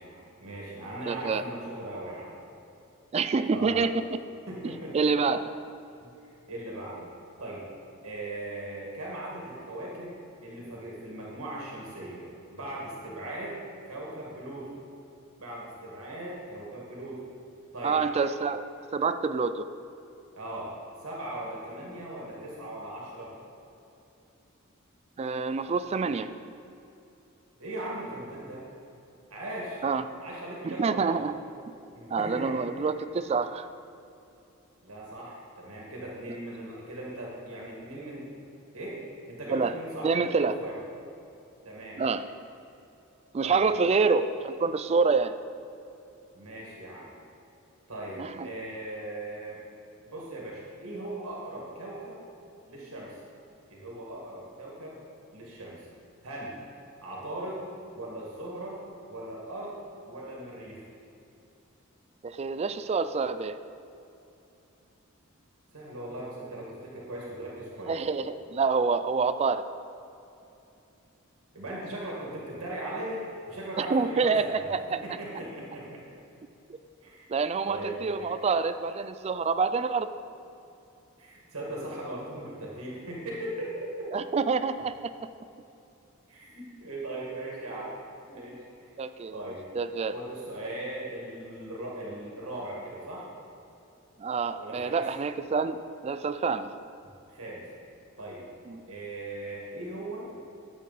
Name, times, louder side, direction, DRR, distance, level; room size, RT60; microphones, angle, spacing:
voice 1, 0.0-2.3 3.5-3.9 4.5-5.0 6.5-7.1 7.4-7.7 8.0-10.2 10.4-13.6 13.9-14.7 15.4-17.2 17.7-18.0 20.4-20.7 21.0-23.3 27.6-28.6 29.3-29.8 30.2-31.2 31.9-32.9 34.8-38.3 38.7-39.0 39.3-40.8 41.6-42.0 43.4-43.6 46.3-47.1 47.9-49.6 50.0-52.2 52.7-53.1 53.7-55.0 55.3-55.8 56.2-56.6 57.0-57.6 57.9-59.8 60.1-60.9 65.7-68.0 71.5-76.0 77.0-77.3 77.7-78.3 81.2-84.1 86.3-87.9 88.3-88.9 89.3-89.6 90.1-93.3 94.5-95.1 97.3-97.7 98.2-98.5 98.9-100.3, right 1 dB, 80° right, -4 dB, 2.0 m, -39 dB
voice 2, 1.1-1.4 3.1-4.1 4.9-5.4 17.8-19.7 25.2-26.3 29.8-30.0 30.6-31.4 31.7-31.8 32.1-33.7 39.5-39.7 40.0-40.6 42.0-42.2 43.3-45.3 48.2-48.5 62.2-63.6 67.8-69.6 73.8-75.0 77.3-80.1 84.1-85.1 89.0-89.4 89.7-90.1 94.2-95.8 96.0-96.7 98.7-98.8, right 4 dB, 30° right, 11 dB, 0.3 m, -27 dB
11.0 x 7.6 x 4.1 m, 2.7 s
head